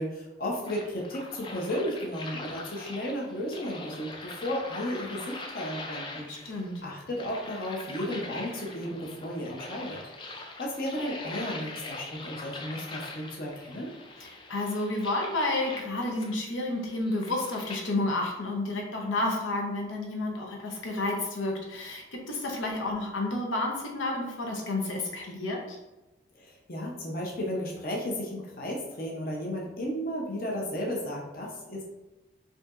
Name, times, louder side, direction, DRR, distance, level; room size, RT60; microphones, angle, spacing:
voice 1, 0.0-6.5 6.8-10.0 10.6-13.9 26.3-31.8, equal, 50° left, -2 dB, 0.7 m, -34 dB
sound 1, 0.7-17.9, left 2 dB, 25° left, 0.3 m, -42 dB
voice 2, 6.3-6.8 14.2-25.8, left 2 dB, 90° left, 0 dB, 0.8 m, -31 dB
5.0 x 2.8 x 2.4 m, 1.1 s
head